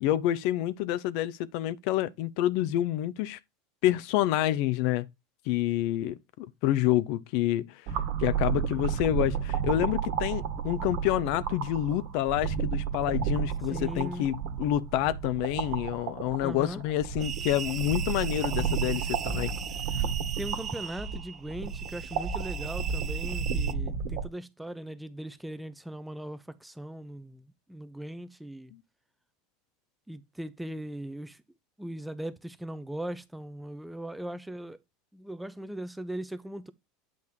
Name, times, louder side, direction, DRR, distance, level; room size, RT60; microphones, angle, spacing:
voice 1, 0.0-3.4 3.8-5.1 5.5-7.8 8.2-19.5, left 13 dB, 60° left, 0.5 m, -28 dB
sound 1, 7.9-24.2, right 7 dB, 60° right, 1.6 m, -32 dB
voice 2, 13.7-14.3 16.4-16.8 20.4-28.7 30.1-31.4 31.8-34.8 35.1-36.7, right 1 dB, 5° right, 0.9 m, -39 dB
sound 2, 17.2-23.7, right 8 dB, 35° right, 0.5 m, -39 dB
8.5 x 3.5 x 4.3 m
hypercardioid pair, 80°, 0 cm